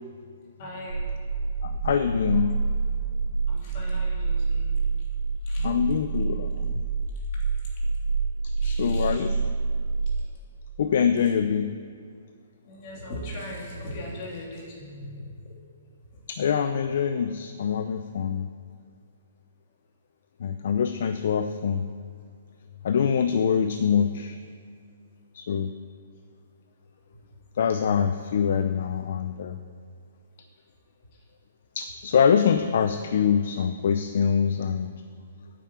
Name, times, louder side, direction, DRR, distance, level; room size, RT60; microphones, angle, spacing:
voice 1, 0.6-1.0 3.5-4.7 5.5-5.6 8.6-9.1 12.7-15.2, left 1 dB, 30° left, -3 dB, 3.2 m, -39 dB
sound 1, 0.9-10.3, right 4 dB, 75° right, 4.0 m, -27 dB
voice 2, 1.6-2.5 5.6-6.7 8.4-9.4 10.8-11.7 16.3-18.5 20.4-21.8 22.8-24.4 25.3-25.7 27.6-29.6 31.7-34.9, left 7 dB, 50° left, 8 dB, 0.6 m, -24 dB
9.3 x 8.5 x 8.9 m, 2.2 s
hypercardioid pair, 175°, 0 cm